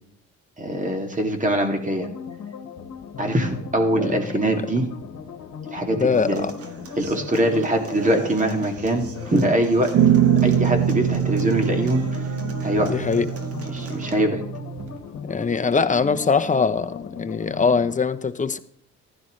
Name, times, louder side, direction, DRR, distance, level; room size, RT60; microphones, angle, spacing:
voice 1, 0.6-2.1 3.2-4.9 5.7-6.4 7.0-9.0 9.3-9.9 10.4-12.0 12.6-13.0 13.7-14.4, right 1 dB, 25° right, 4 dB, 2.5 m, -23 dB
sound 1, 2.0-18.0, left 6 dB, 65° left, 1.5 m, -37 dB
voice 2, 6.0-6.5 12.8-13.3 15.3-18.6, left 5 dB, 25° left, 10 dB, 0.8 m, -22 dB
Human voice / Acoustic guitar, 6.1-14.1, right 3 dB, 50° right, 1.8 m, -40 dB
sound 2, 9.9-15.0, right 9 dB, 75° right, 1.2 m, -23 dB
15.0 x 11.5 x 3.2 m, 0.65 s
cardioid pair, 90°, 30 cm